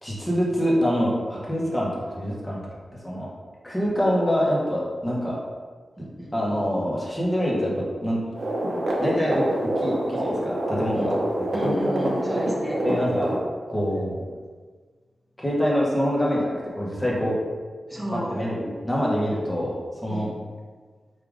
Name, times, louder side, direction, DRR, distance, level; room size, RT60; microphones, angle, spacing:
voice 1, 0.0-2.6 3.0-3.3 3.6-5.4 6.3-8.2 9.0-12.2 12.8-13.3 13.7-14.2 15.4-17.4 18.1-19.7 20.0-20.3, equal, 15° left, -4 dB, 1.2 m, -25 dB
voice 2, 6.0-6.6 10.9-11.1 11.5-12.8 17.9-18.4 20.1-20.3, right 1 dB, 10° right, -4 dB, 1.0 m, -32 dB
sound 1, 8.3-13.4, right 1 dB, 50° right, 0.9 m, -26 dB
4.8 x 2.8 x 3.7 m, 1.5 s
wide cardioid pair, 95°, 0 cm